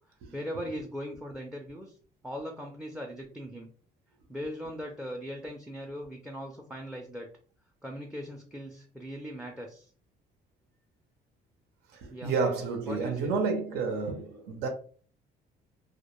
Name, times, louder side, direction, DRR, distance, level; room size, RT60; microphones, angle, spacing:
voice 1, 0.3-2.0 2.2-3.7 4.3-7.3 7.8-9.9 12.1-12.3 12.9-13.3, equal, 5° right, 0.4 m, -39 dB
voice 2, 11.9-14.7, right 4 dB, 90° right, 0.6 m, -30 dB
2.2 x 2.2 x 2.9 m
cardioid pair, 110°, 17 cm